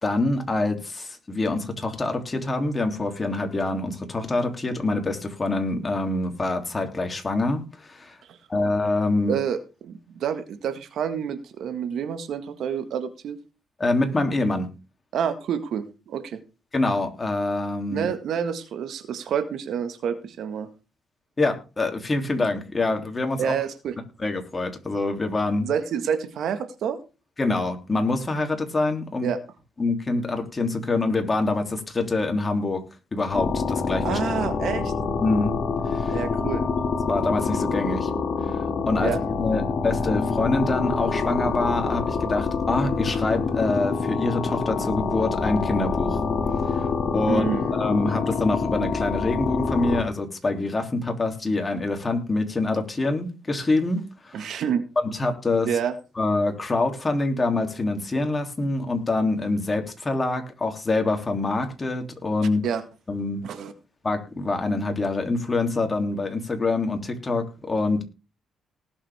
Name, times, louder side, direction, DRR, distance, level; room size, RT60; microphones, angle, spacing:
voice 1, 0.0-8.2 8.5-9.3 13.8-14.7 16.7-18.1 21.4-23.5 24.2-25.7 27.4-29.3 29.8-32.8 33.1-34.2 35.2-35.5 35.9-36.2 37.1-38.1 38.5-46.2 47.1-47.5 47.7-54.5 55.0-55.7 56.2-62.6 63.1-63.4 64.0-68.0, left 2 dB, 25° left, 4 dB, 3.2 m, -25 dB
voice 2, 9.3-13.4 15.1-16.4 17.9-20.7 23.4-24.0 25.6-27.0 29.2-29.4 34.0-34.9 36.1-36.6 39.0-39.2 47.3-47.6 54.3-54.9 55.7-55.9 62.6-62.8 63.4-63.7, right 8 dB, 70° right, 9 dB, 1.7 m, -28 dB
sound 1, 33.3-50.0, left 4 dB, 50° left, 2.6 m, -26 dB
19.0 x 7.4 x 3.6 m, 0.30 s
cardioid pair, 90°, 0 cm